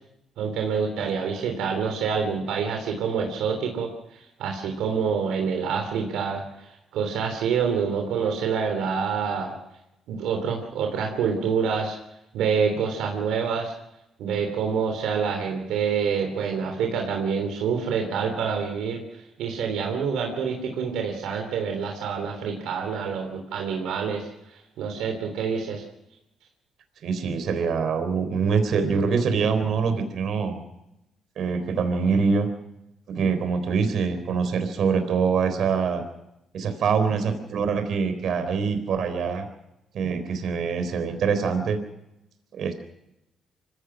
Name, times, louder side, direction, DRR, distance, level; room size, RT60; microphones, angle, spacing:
voice 1, 0.4-9.5 10.1-12.0 12.3-13.7 14.2-25.8, right 6 dB, 85° right, 3 dB, 3.2 m, -27 dB
voice 2, 27.0-30.6 31.4-32.5 33.1-36.0 36.5-39.5 39.9-41.8 42.5-42.9, right 5 dB, 65° right, 7 dB, 3.8 m, -24 dB
25.5 x 16.5 x 6.3 m, 0.88 s
cardioid pair, 90°, 0 cm